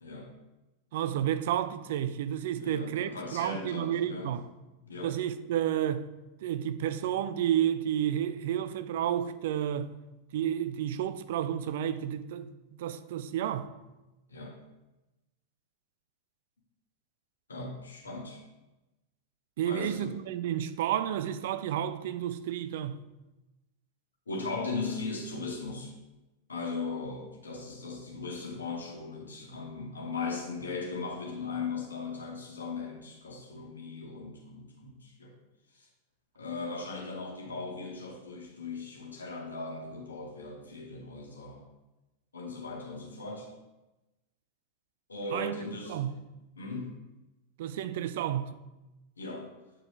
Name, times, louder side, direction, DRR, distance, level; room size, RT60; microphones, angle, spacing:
voice 1, 0.9-4.4 5.0-6.1 6.4-9.9 10.3-12.5 12.8-13.7 19.6-23.0 45.3-45.5 45.9-46.2 47.6-48.6, right 10 dB, 55° right, 0.4 m, -31 dB
voice 2, 2.5-4.3 4.8-5.1 14.3-14.6 17.5-18.4 19.6-20.1 24.3-25.9 26.5-35.3 35.7-35.9 36.3-41.7 42.3-43.5 45.1-46.0 46.5-47.0 49.2-49.6, left 3 dB, 75° left, 1.5 m, -38 dB
8.7 x 4.6 x 3.2 m
figure-of-eight pair, 90°, 0 cm